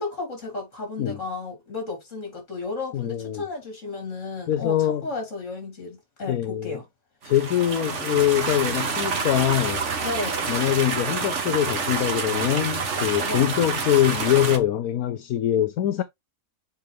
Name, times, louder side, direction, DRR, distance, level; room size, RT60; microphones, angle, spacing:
voice 1, 0.0-6.8 10.0-10.5 13.2-13.5, left 3 dB, 55° left, 3.4 m, -33 dB
voice 2, 2.9-3.4 4.5-5.1 6.3-6.8 7.2-9.9 10.5-16.0, left 11 dB, 80° left, 1.2 m, -23 dB
sound 1, 7.2-14.6, right 5 dB, 55° right, 1.5 m, -28 dB
7.0 x 4.7 x 3.1 m
omnidirectional pair, 1.5 m